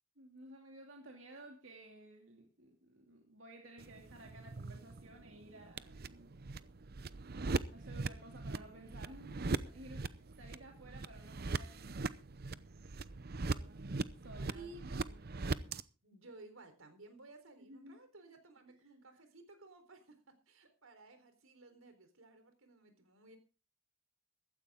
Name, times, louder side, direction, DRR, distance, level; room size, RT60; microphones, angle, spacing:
voice 1, 0.2-6.4 7.7-12.1 13.3-15.3 15.6-15.7 17.6-18.0 19.1-19.2, right 1 dB, 65° right, 2.7 m, -55 dB
sound 1, 3.8-15.8, right 3 dB, 50° right, 0.7 m, -41 dB
voice 2, 14.5-15.0 16.0-23.4, right 2 dB, 90° right, 4.0 m, -56 dB
15.5 x 14.0 x 3.6 m
head